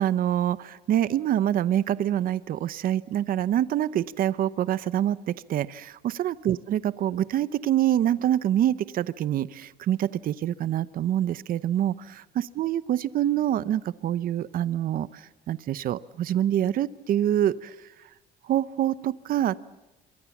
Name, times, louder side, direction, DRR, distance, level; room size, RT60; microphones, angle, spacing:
voice 1, 0.0-18.1 18.4-19.5, right 11 dB, 60° right, 17 dB, 0.8 m, -26 dB
27.5 x 23.5 x 7.2 m, 1.0 s
cardioid pair, 110°, 17 cm